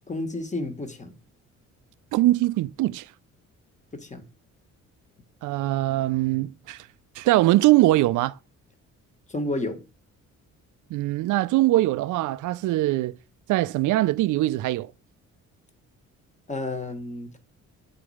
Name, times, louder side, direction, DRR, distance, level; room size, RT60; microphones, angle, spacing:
voice 1, 0.1-1.1 3.9-4.2 9.3-9.8 16.5-17.4, left 2 dB, 25° left, 1.4 m, -31 dB
voice 2, 2.1-3.1 5.4-6.9 7.2-8.3 10.9-13.1 13.5-14.9, right 17 dB, 80° right, 0.5 m, -22 dB
7.9 x 4.2 x 4.9 m
cardioid pair, 90°, 30 cm